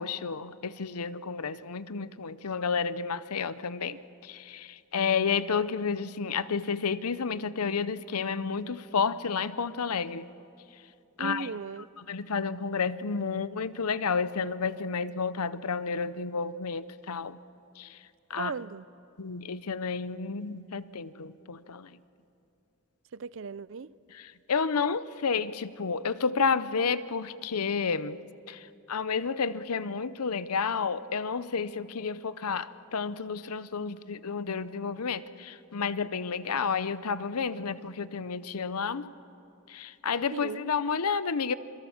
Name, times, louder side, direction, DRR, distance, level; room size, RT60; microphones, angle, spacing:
voice 1, 0.0-10.3 11.2-11.5 12.1-17.4 17.8-18.0 18.3-18.5 19.2-22.0 24.1-28.2 28.5-39.1 39.7-41.5, left 5 dB, 85° left, 0.7 m, -31 dB
voice 2, 11.2-11.9 18.4-18.9 23.1-23.9 40.3-40.7, right 5 dB, 55° right, 0.5 m, -37 dB
27.0 x 22.5 x 7.2 m
head